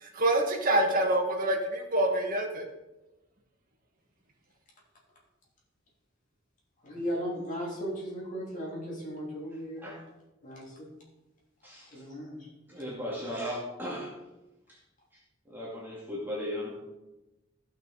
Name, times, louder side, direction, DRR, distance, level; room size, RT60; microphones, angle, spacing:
voice 1, 0.0-2.6, right 1 dB, 45° right, 1 dB, 1.8 m, -26 dB
voice 2, 6.8-10.0 10.4-10.9 11.9-12.5, equal, 40° left, -4 dB, 3.2 m, -36 dB
voice 3, 12.7-14.1 15.5-16.8, equal, 10° right, -7 dB, 2.3 m, -36 dB
15.5 x 6.0 x 4.2 m, 1.0 s
head